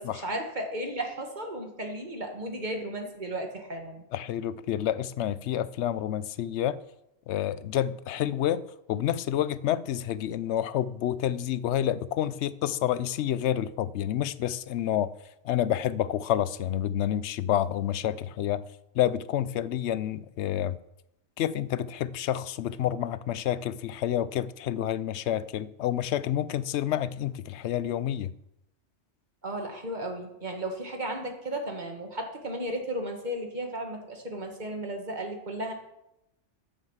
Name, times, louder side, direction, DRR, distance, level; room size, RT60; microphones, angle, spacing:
voice 1, 0.0-4.0 29.4-35.7, right 1 dB, 40° right, 1.9 m, -34 dB
voice 2, 4.1-6.8 7.3-8.6 8.9-15.1 15.4-18.6 18.9-20.8 21.4-28.3, left 11 dB, 75° left, 0.9 m, -29 dB
9.6 x 7.2 x 7.2 m
omnidirectional pair, 1.2 m